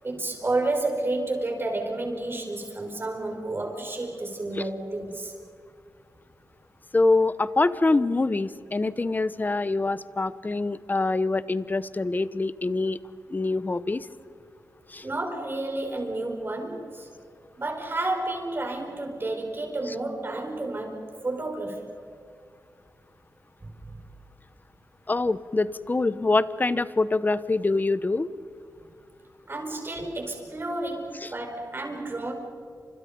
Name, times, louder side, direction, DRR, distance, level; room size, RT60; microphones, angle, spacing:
voice 1, 0.0-5.3 15.0-17.1 17.6-21.9 23.6-24.0 29.5-32.3, right 2 dB, 35° right, 3 dB, 5.5 m, -31 dB
voice 2, 6.9-13.0 13.3-14.1 14.9-15.1 25.1-28.3 31.2-31.3, left 3 dB, 25° left, 16 dB, 0.9 m, -25 dB
30.0 x 27.0 x 5.4 m, 2.3 s
wide cardioid pair, 90°, 7 cm